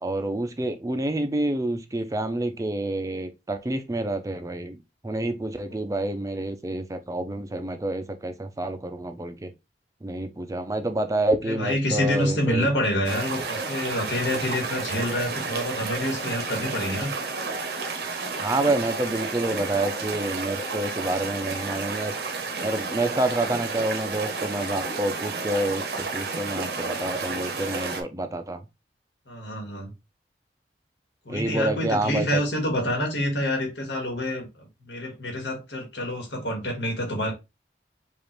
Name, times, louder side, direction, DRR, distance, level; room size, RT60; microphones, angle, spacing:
voice 1, 0.0-4.8 5.0-9.5 10.0-12.7 18.4-22.1 22.6-28.6 31.3-32.4, right 1 dB, 20° right, 0.4 m, -28 dB
voice 2, 11.5-17.1 29.3-29.9 31.3-37.3, left 1 dB, 85° left, 1.7 m, -27 dB
sound 1, 13.0-28.0, right 4 dB, 65° right, 0.8 m, -31 dB
5.0 x 2.5 x 3.1 m
head